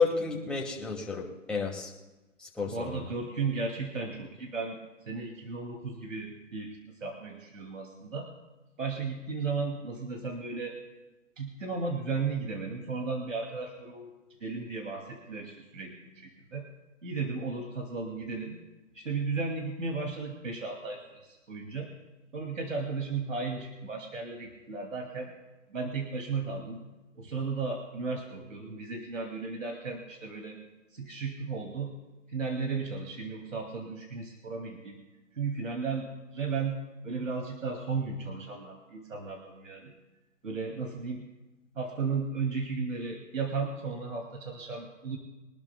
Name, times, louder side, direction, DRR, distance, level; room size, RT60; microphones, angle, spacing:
voice 1, 0.0-1.9 2.4-3.0, left 5 dB, ahead, -4 dB, 2.3 m, -30 dB
voice 2, 2.6-4.8 5.1-8.3 8.8-10.8 11.4-14.1 14.4-16.7 17.0-18.6 18.9-21.9 22.3-25.3 25.7-26.8 27.2-30.6 30.9-31.9 32.3-35.0 35.3-39.9 40.4-41.3 41.7-45.2, right 4 dB, 80° right, 1 dB, 2.7 m, -35 dB
24.5 x 12.0 x 2.3 m, 1.1 s
hypercardioid pair, 155°, 38 cm